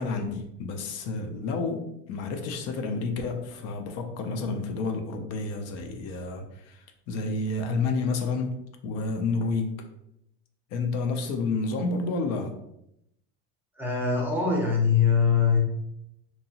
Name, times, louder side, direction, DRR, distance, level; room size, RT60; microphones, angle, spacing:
voice 1, 0.0-8.5 8.8-9.8 10.7-12.6, left 3 dB, 50° left, 5 dB, 0.5 m, -30 dB
voice 2, 13.7-15.6, left 6 dB, 5° right, -2 dB, 0.6 m, -22 dB
2.8 x 2.2 x 2.7 m, 0.79 s
supercardioid pair, 125°, 32 cm